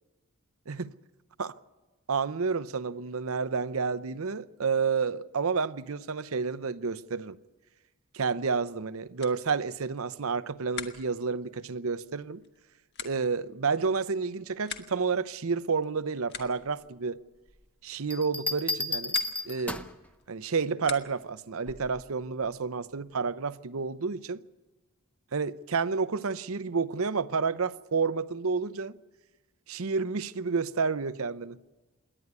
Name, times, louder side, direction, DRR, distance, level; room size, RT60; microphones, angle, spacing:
voice 1, 2.1-7.4 8.1-12.4 13.0-17.2 17.8-19.1 19.4-19.8 20.3-24.4 25.3-29.0 29.7-31.6, right 5 dB, 75° right, 0.7 m, -30 dB
sound 1, 9.1-21.5, left 7 dB, 50° left, 1.6 m, -47 dB
sound 2, 18.1-20.1 21.7-22.0, left 2 dB, 5° left, 0.7 m, -32 dB
27.0 x 11.0 x 9.4 m
head